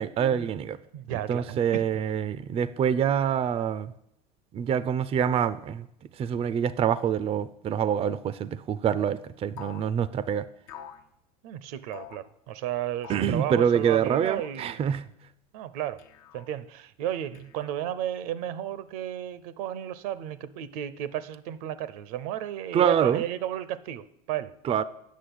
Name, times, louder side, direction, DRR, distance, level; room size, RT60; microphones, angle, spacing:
voice 1, 0.0-0.8 1.1-3.9 4.5-5.9 6.2-10.5 13.1-15.0 22.7-23.2 24.6-24.8, right 8 dB, 30° right, 15 dB, 0.4 m, -26 dB
voice 2, 0.9-1.8 11.4-14.8 15.5-16.0 16.3-24.5, right 11 dB, 70° right, 16 dB, 0.7 m, -33 dB
sound 1, 9.6-9.9 10.7-11.0 11.9-12.2 13.0-13.4 14.3-14.6 16.0-16.5 17.3-18.0, left 9 dB, 70° left, 1.1 m, -46 dB
8.4 x 6.3 x 7.8 m, 0.77 s
hypercardioid pair, 95°, 19 cm